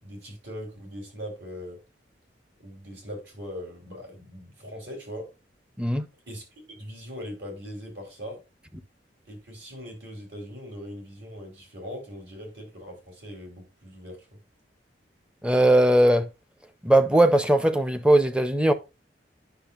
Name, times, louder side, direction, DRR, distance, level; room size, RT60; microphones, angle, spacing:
voice 1, 0.0-1.8 2.6-5.3 6.3-8.4 9.3-14.3, equal, 70° right, 3.5 m, -40 dB
voice 2, 15.4-16.3 16.8-18.7, right 1 dB, 5° right, 0.5 m, -19 dB
10.0 x 6.2 x 2.4 m
head